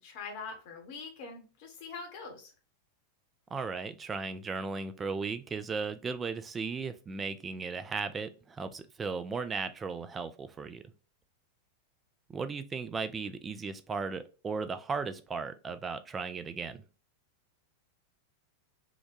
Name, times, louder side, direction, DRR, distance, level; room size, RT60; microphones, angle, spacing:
voice 1, 0.0-2.5, left 4 dB, 50° left, 2 dB, 0.9 m, -43 dB
voice 2, 3.5-10.8 12.3-16.8, right 4 dB, 20° right, 11 dB, 0.3 m, -36 dB
2.8 x 2.1 x 2.5 m, 0.34 s
figure-of-eight pair, 90°, 0 cm